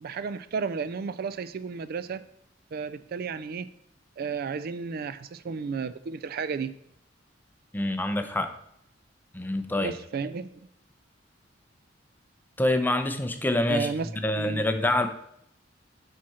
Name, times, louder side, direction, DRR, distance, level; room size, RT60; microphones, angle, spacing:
voice 1, 0.0-2.2 2.7-3.7 4.2-6.7 9.8-10.7 13.7-14.1 14.4-14.7, right 5 dB, 55° right, 15 dB, 0.4 m, -33 dB
voice 2, 7.7-8.5 9.3-9.9 12.6-13.9 14.2-15.1, left 1 dB, 10° left, 7 dB, 0.6 m, -26 dB
7.5 x 5.8 x 4.3 m, 0.74 s
head